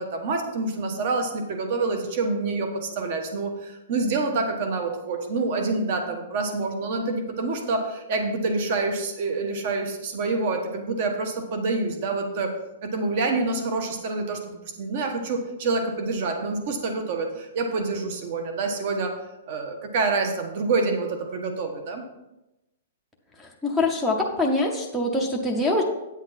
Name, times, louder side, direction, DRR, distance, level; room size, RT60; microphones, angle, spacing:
voice 1, 0.0-12.5 12.8-14.4 14.8-19.1 19.5-22.0, right 3 dB, 40° right, 5 dB, 1.2 m, -27 dB
voice 2, 23.4-25.8, left 2 dB, 5° right, 2 dB, 0.7 m, -24 dB
8.9 x 8.0 x 4.1 m, 0.95 s
hypercardioid pair, 175°, 0 cm